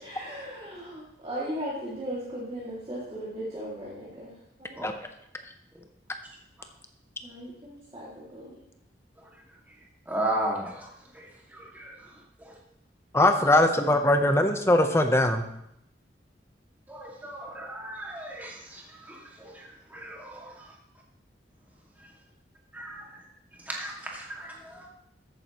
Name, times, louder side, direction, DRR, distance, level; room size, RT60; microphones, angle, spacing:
voice 1, 0.0-4.3 4.6-4.8 7.2-8.6 13.4-13.6 13.8-14.2, equal, 30° right, -8 dB, 2.3 m, -37 dB
voice 2, 10.1-10.9 11.1-11.9 12.4-12.5 16.9-20.5 22.7-23.2 23.7-24.9, right 1 dB, 10° right, -2 dB, 2.0 m, -35 dB
voice 3, 13.1-15.4, left 1 dB, 15° left, 6 dB, 0.8 m, -21 dB
13.5 x 9.0 x 3.0 m, 0.77 s
head